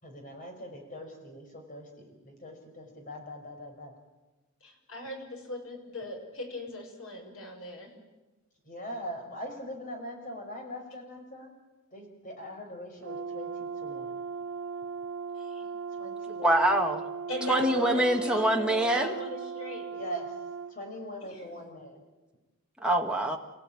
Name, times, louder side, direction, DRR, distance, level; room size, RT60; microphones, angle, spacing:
voice 1, 0.0-3.9 8.6-11.5 11.9-14.2 15.9-16.7 19.9-20.3 20.7-22.0, equal, 40° left, 3 dB, 5.7 m, -42 dB
voice 2, 4.6-7.9 15.3-15.7 17.3-19.9 21.2-21.4, left 1 dB, 75° left, 2 dB, 6.8 m, -38 dB
Brass instrument, 13.0-20.7, right 5 dB, 55° right, 1.2 m, -38 dB
voice 3, 16.4-17.1 17.5-19.1 22.8-23.4, right 1 dB, 5° right, 1 dB, 2.0 m, -25 dB
29.5 x 16.5 x 9.0 m, 1.1 s
head